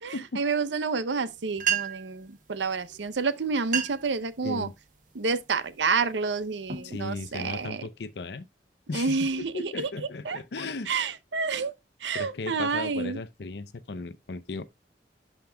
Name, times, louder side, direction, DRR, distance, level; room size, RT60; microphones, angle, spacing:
voice 1, 0.0-4.7 5.1-7.8 8.9-9.9 10.2-10.4 10.9-11.7 12.0-13.2, right 4 dB, 85° right, 0.7 m, -29 dB
sound 1, 1.3-1.4 1.6-2.2 3.1-3.2 3.6-4.2 4.6-5.0 5.6-5.9 6.4-7.7, right 8 dB, 45° right, 0.9 m, -31 dB
voice 2, 6.7-8.5 8.9-10.9 12.1-14.7, left 3 dB, 70° left, 0.6 m, -36 dB
11.5 x 5.2 x 2.2 m
head